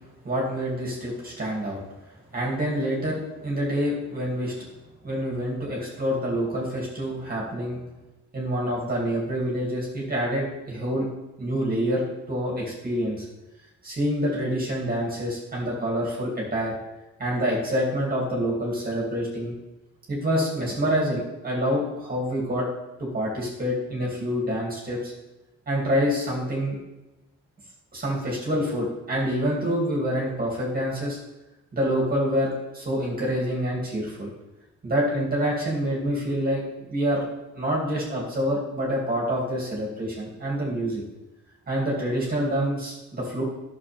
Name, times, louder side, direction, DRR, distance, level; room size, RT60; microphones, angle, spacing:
voice 1, 0.2-1.8 2.3-4.5 5.0-7.8 8.3-11.1 11.4-12.0 12.3-13.3 13.8-16.7 17.2-19.5 20.1-22.7 23.0-25.1 25.7-26.8 27.9-31.2 31.7-34.3 34.8-37.2 37.5-41.0 41.7-43.4, equal, 30° right, -3 dB, 2.7 m, -27 dB
11.0 x 6.7 x 3.6 m, 1.0 s
cardioid pair, 90°, 30 cm